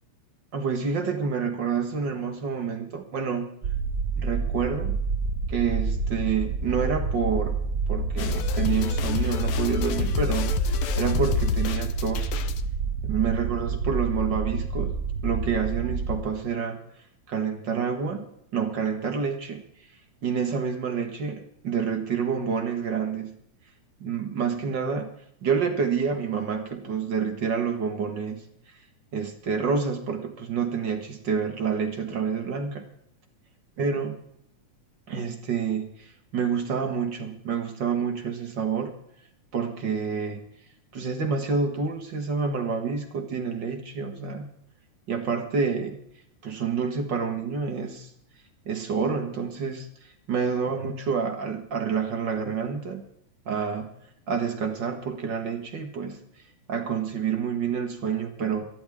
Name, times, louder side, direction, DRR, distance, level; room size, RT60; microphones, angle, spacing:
voice 1, 0.5-3.5 4.2-5.0 5.5-7.6 7.9-12.3 13.0-15.0 15.2-16.8 17.3-18.3 18.5-19.6 20.2-23.4 24.0-25.1 25.4-28.4 29.1-32.8 33.8-34.2 35.1-38.9 39.5-40.4 40.9-44.5 45.1-46.0 46.4-48.1 48.7-53.0 53.5-53.9 54.3-56.2 56.7-58.7, right 6 dB, 45° right, 5 dB, 1.7 m, -28 dB
sound 1, 3.6-16.2, right 4 dB, 65° right, 0.9 m, -28 dB
sound 2, 8.2-12.6, left 8 dB, 70° left, 1.3 m, -29 dB
26.0 x 10.5 x 3.6 m, 0.72 s
omnidirectional pair, 3.4 m